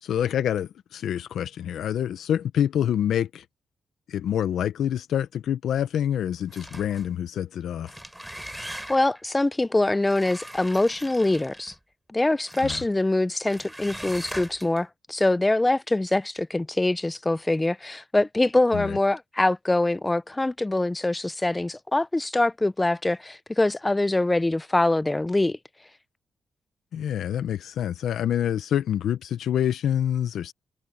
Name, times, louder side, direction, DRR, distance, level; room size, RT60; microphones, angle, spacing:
voice 1, 0.0-3.4 4.1-7.9 12.6-12.8 18.7-19.0 26.9-30.5, left 10 dB, 85° left, 0.7 m, -26 dB
sound 1, 6.5-7.1 7.7-9.2 10.0-11.8 12.5-12.9 13.5-14.8, equal, 5° right, 4.1 m, -40 dB
voice 2, 8.6-11.7 12.1-25.6, left 2 dB, 20° left, 0.7 m, -24 dB
cardioid pair, 65°, 0 cm